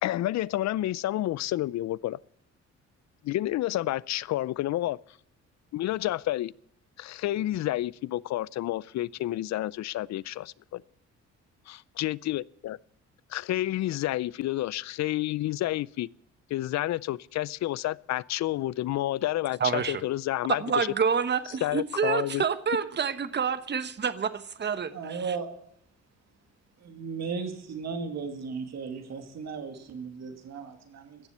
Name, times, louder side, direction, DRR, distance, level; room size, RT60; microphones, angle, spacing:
voice 1, 0.0-2.2 3.2-5.0 5.7-6.5 7.0-10.8 11.7-12.8 13.3-16.1 16.5-20.9 21.6-22.4, left 15 dB, 65° left, 0.5 m, -30 dB
voice 2, 19.6-20.0 20.6-24.9 25.3-25.4, right 6 dB, 35° right, 1.1 m, -28 dB
voice 3, 24.9-25.5 26.8-31.3, right 5 dB, 60° right, 2.6 m, -36 dB
16.0 x 7.2 x 9.4 m
cardioid pair, 90°, 30 cm